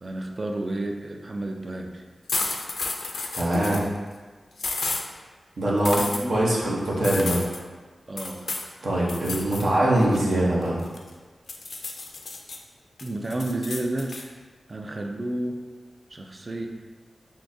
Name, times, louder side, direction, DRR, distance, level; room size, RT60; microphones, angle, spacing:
voice 1, 0.0-2.1 3.5-3.8 5.8-6.6 8.1-8.5 9.6-9.7 13.0-14.4 14.7-15.7 16.1-16.7, right 1 dB, 45° right, 3 dB, 0.3 m, -31 dB
sound 1, 2.3-3.9 4.6-5.0 5.8-6.2 7.0-7.6 8.2-8.7 9.1-9.7 10.0-11.1 11.5-12.6 13.0-14.2, left 3 dB, 70° left, 0.3 m, -31 dB
voice 2, 3.3-3.8 5.6-6.0 6.3-7.4 8.8-10.8, right 1 dB, 75° right, -5 dB, 0.7 m, -22 dB
3.6 x 2.6 x 2.6 m, 1.4 s
wide cardioid pair, 70°, 0 cm